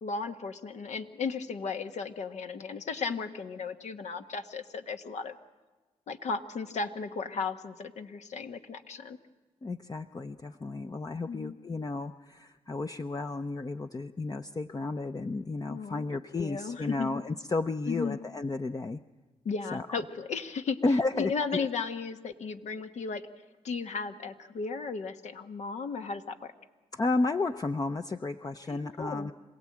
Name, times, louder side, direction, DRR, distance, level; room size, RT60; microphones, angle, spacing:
voice 1, 0.0-5.4 6.1-9.2 11.3-11.6 15.7-17.1 17.9-18.2 19.4-20.8 21.1-23.2 23.6-26.5 28.7-29.3, left 4 dB, 70° left, 6 dB, 1.5 m, -35 dB
voice 2, 9.6-19.0 19.7-20.0 20.8-21.7 26.9-29.3, left 3 dB, 30° left, 7 dB, 0.8 m, -32 dB
26.5 x 17.0 x 8.7 m, 1.3 s
supercardioid pair, 55°, 12 cm